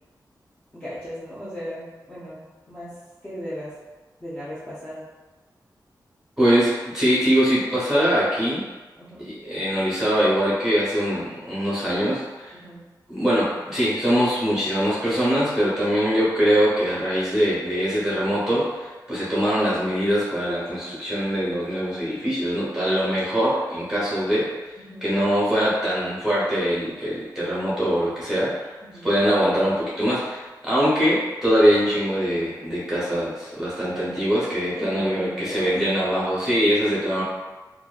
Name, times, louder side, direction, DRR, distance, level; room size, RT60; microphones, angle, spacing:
voice 1, 0.7-2.4 2.7-3.0 3.2-3.7 4.2-5.0 9.0-9.3 12.5-12.8 24.8-25.1 28.9-29.1 34.7-36.4, equal, 15° left, -11 dB, 0.5 m, -37 dB
voice 2, 6.4-8.6 9.2-12.6 13.1-24.8 25.0-28.7 29.0-37.2, equal, 10° right, -9 dB, 1.1 m, -22 dB
2.9 x 2.4 x 2.3 m, 1.2 s
wide cardioid pair, 155°, 7 cm